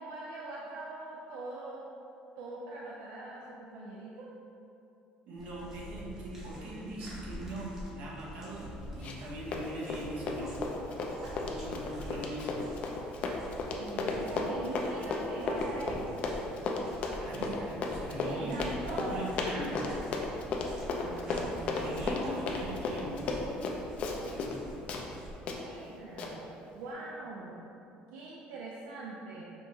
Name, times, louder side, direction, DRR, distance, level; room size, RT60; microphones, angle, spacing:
voice 1, 0.0-1.8 2.4-4.3 11.2-11.3 13.8-16.3 18.2-20.0 21.0-22.0 25.6-27.6 28.1-29.5, right 2 dB, 80° right, -4 dB, 0.4 m, -42 dB
sound 1, 5.3-25.3, equal, 20° right, 0.9 m, -47 dB
voice 2, 5.3-10.6 11.4-12.6 17.2-19.8 21.2-23.3 24.3-24.7, right 1 dB, 60° right, -4 dB, 0.9 m, -40 dB
Run, 9.0-9.3 9.5-24.6 24.9-25.0 25.5-25.6 26.2-26.3, left 3 dB, 45° left, 0.4 m, -34 dB
5.4 x 3.0 x 2.7 m, 2.8 s
cardioid pair, 160°, 3 cm